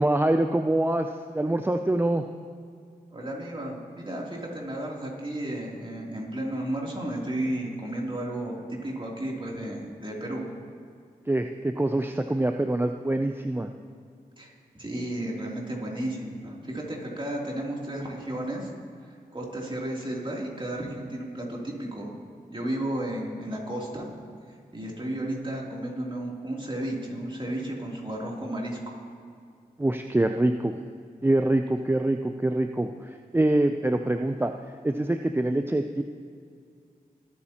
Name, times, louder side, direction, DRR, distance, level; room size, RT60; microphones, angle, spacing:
voice 1, 0.0-2.2 11.3-13.7 29.8-30.8 31.2-34.5 34.8-36.0, right 1 dB, 15° right, 5 dB, 0.5 m, -25 dB
voice 2, 3.1-10.4 14.4-18.7 19.1-22.1 22.5-24.1 24.5-28.8, right 1 dB, 30° right, -3 dB, 3.0 m, -33 dB
20.0 x 8.6 x 2.9 m, 2.3 s
cardioid pair, 45°, 16 cm